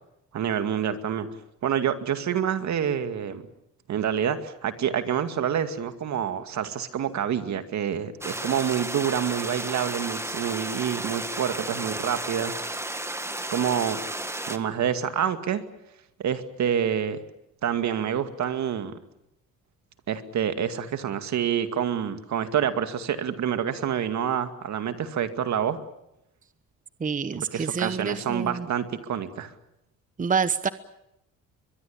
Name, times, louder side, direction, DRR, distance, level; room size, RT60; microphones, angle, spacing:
voice 1, 0.3-1.3 1.6-3.4 3.9-12.5 13.5-14.0 14.5-15.6 16.2-17.2 17.6-19.0 20.1-25.8 27.4-29.5, right 8 dB, 65° right, 9 dB, 2.2 m, -27 dB
sound 1, 8.2-14.6, right 1 dB, 10° right, 1.7 m, -33 dB
voice 2, 27.0-28.7 30.2-30.7, right 6 dB, 25° right, 13 dB, 1.0 m, -27 dB
22.5 x 22.5 x 8.8 m, 0.83 s
cardioid pair, 90°, 30 cm